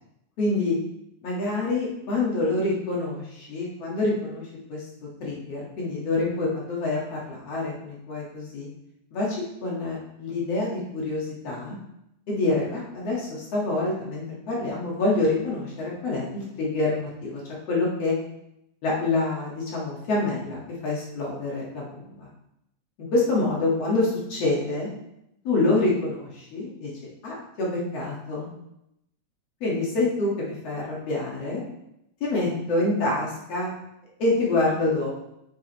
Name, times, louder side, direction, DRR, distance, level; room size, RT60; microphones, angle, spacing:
voice 1, 0.4-0.8 1.2-8.7 9.1-9.4 9.6-11.8 12.3-17.4 17.7-18.1 18.8-22.3 23.1-24.9 25.4-26.9 27.2-28.5 29.6-31.6 32.2-33.7 34.2-35.1, left 2 dB, 55° left, -4 dB, 2.7 m, -26 dB
8.4 x 7.9 x 3.1 m, 0.82 s
omnidirectional pair, 3.5 m